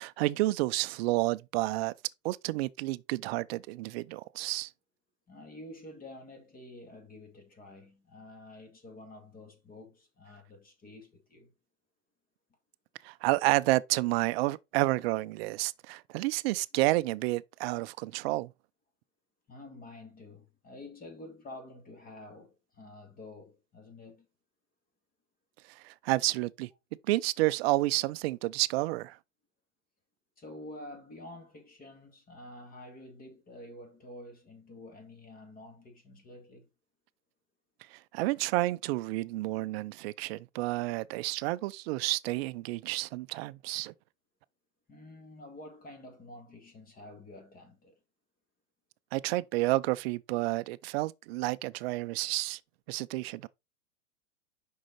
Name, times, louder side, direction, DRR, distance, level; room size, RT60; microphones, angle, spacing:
voice 1, 0.0-1.9 2.2-4.7 13.0-18.5 25.8-26.7 27.1-29.2 37.9-43.9 49.1-52.6 52.9-53.5, right 19 dB, 50° right, 0.5 m, -30 dB
voice 2, 5.3-11.5 19.5-24.3 30.4-36.7 44.9-48.0, left 1 dB, 20° left, 2.0 m, -49 dB
6.2 x 5.6 x 4.0 m
hypercardioid pair, 120°, 40 cm